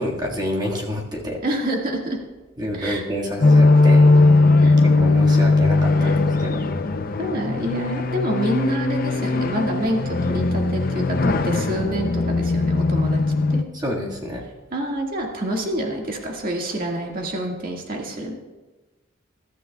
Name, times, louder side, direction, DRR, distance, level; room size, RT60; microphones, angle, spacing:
voice 1, 0.0-1.4 2.6-4.0 4.8-6.6 13.7-14.4, equal, 20° right, -3 dB, 1.8 m, -28 dB
voice 2, 1.4-2.2 2.7-3.0 4.6-4.8 6.0-6.2 7.2-13.2 13.5-13.7 14.7-18.3, right 1 dB, 45° right, 0 dB, 1.9 m, -27 dB
sound 1, 3.4-13.6, left 3 dB, 45° left, 0.6 m, -18 dB
22.0 x 13.0 x 2.3 m, 1.2 s
head